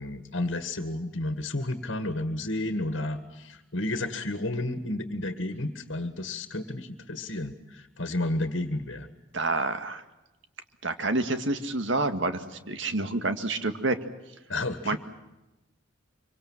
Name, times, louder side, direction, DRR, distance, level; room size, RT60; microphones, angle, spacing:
voice 1, 0.0-9.1 14.5-15.0, left 2 dB, 65° left, 9 dB, 1.9 m, -31 dB
voice 2, 9.3-10.0 10.8-14.0 14.9-15.0, right 2 dB, 65° right, 8 dB, 1.9 m, -28 dB
25.5 x 24.5 x 7.5 m, 1.0 s
head